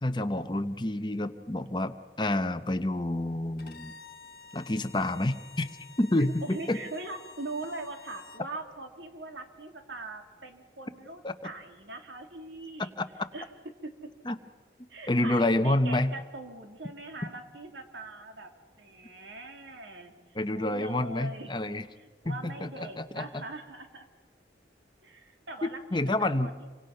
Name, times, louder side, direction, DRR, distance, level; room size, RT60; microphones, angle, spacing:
voice 1, 0.0-3.9 4.5-5.7 6.0-6.8 11.2-11.3 13.0-13.1 14.3-14.4 15.1-16.1 20.3-21.8 22.2-23.4 25.6-26.5, left 1 dB, 25° left, 8 dB, 0.9 m, -28 dB
Bowed string instrument, 3.6-8.5, left 4 dB, 55° left, 1.8 m, -51 dB
voice 2, 6.2-12.9 13.3-13.5 13.8-13.9 14.9-18.5 18.8-20.1 20.4-21.8 22.2-24.1 25.0-26.7, right 2 dB, 90° right, 5 dB, 2.6 m, -42 dB
27.0 x 24.5 x 5.7 m, 1.4 s
head